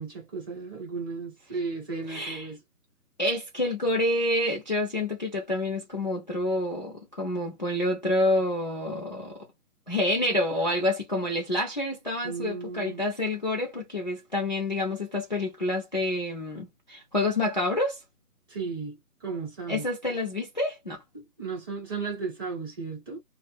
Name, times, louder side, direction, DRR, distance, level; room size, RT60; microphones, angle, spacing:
voice 1, 0.0-2.6 12.2-13.0 18.5-19.9 21.1-23.2, right 4 dB, 15° right, 0.7 m, -35 dB
voice 2, 2.1-2.5 3.2-9.5 9.9-18.0 19.7-21.0, left 1 dB, 30° left, 0.4 m, -28 dB
2.3 x 2.1 x 3.1 m
figure-of-eight pair, 145°, 46 cm